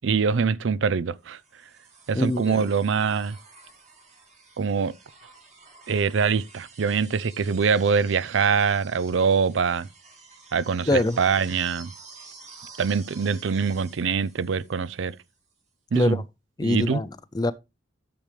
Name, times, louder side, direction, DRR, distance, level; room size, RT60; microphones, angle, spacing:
voice 1, 0.0-1.4 2.1-3.4 4.6-4.9 5.9-9.9 10.5-11.9 12.8-15.1 15.9-16.2 16.6-17.0, right 5 dB, 80° right, 0.5 m, -24 dB
sound 1, 1.3-15.3 16.8-16.9, right 4 dB, 35° right, 2.1 m, -50 dB
voice 2, 2.1-2.7 10.9-11.2 15.9-16.2 16.6-17.5, left 2 dB, 20° left, 0.4 m, -24 dB
10.5 x 6.9 x 3.3 m
head